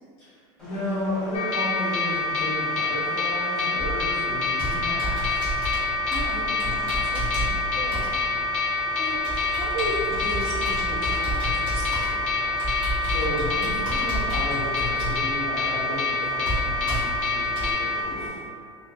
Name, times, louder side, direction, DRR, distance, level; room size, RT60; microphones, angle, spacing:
voice 1, 0.2-5.5 13.0-18.4, equal, 50° left, -12 dB, 0.8 m, -33 dB
sound 1, 0.6-18.3, equal, 5° left, 0.3 m, -44 dB
sound 2, 1.3-18.0, left 3 dB, 80° left, 0.5 m, -26 dB
Computer keyboard, 3.8-17.7, right 1 dB, 30° right, 1.1 m, -32 dB
voice 2, 6.1-8.1 8.5-12.2, right 1 dB, 60° right, -6 dB, 0.8 m, -35 dB
3.0 x 2.0 x 2.2 m, 2.5 s
supercardioid pair, 170°, 16 cm